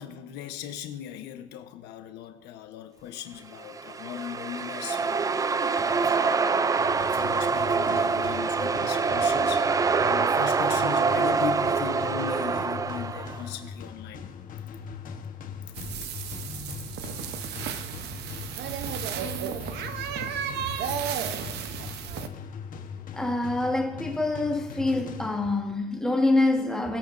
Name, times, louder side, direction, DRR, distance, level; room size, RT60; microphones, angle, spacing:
voice 1, 0.0-9.7 10.1-14.3 15.6-16.9, left 9 dB, 90° left, 1.0 m, -39 dB
sound 1, 3.6-13.5, right 5 dB, 20° right, 0.4 m, -25 dB
sound 2, 6.8-25.8, left 7 dB, 55° left, 1.1 m, -40 dB
sound 3, 15.7-22.3, right 9 dB, 75° right, 0.9 m, -33 dB
voice 2, 23.1-27.0, left 2 dB, 5° left, 1.4 m, -26 dB
21.0 x 8.5 x 2.6 m
cardioid pair, 110°, 17 cm